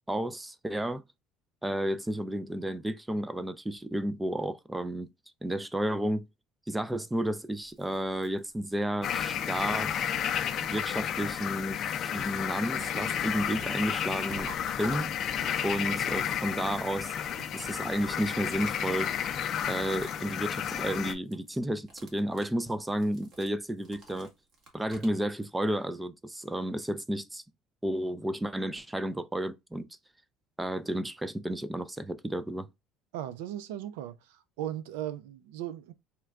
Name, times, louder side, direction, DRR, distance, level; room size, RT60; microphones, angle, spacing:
voice 1, 0.1-1.0 1.6-5.1 5.4-6.3 6.7-9.9 10.6-14.5 14.8-15.1 15.6-17.2 17.5-19.1 19.7-24.3 24.7-27.4 27.8-29.9 30.6-32.7, right 1 dB, 10° right, 0.4 m, -32 dB
sound 1, 7.5-9.1 10.0-11.6 11.9-15.5 17.0-20.3 20.6-20.9 21.2-21.5 21.8-25.2, right 2 dB, 50° right, 1.4 m, -51 dB
sound 2, 9.0-21.1, left 9 dB, 50° left, 0.5 m, -32 dB
voice 2, 33.1-34.2 34.6-35.9, right 11 dB, 90° right, 0.4 m, -37 dB
4.3 x 2.2 x 2.4 m
supercardioid pair, 100°, 0 cm